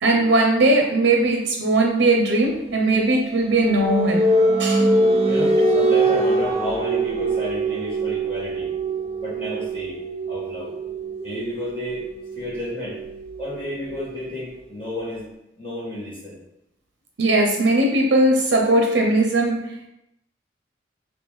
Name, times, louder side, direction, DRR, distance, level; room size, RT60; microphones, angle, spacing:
voice 1, 0.0-4.2 4.6-4.9 17.2-19.6, right 2 dB, 85° right, 1 dB, 0.5 m, -19 dB
sound 1, 2.6-14.2, right 2 dB, 35° right, 0.3 m, -23 dB
voice 2, 5.3-8.7 9.2-10.0 10.3-10.7 11.2-12.0 12.3-13.0 13.4-15.2 15.5-16.4, left 1 dB, 30° left, -9 dB, 1.4 m, -31 dB
3.5 x 3.0 x 3.0 m, 0.85 s
head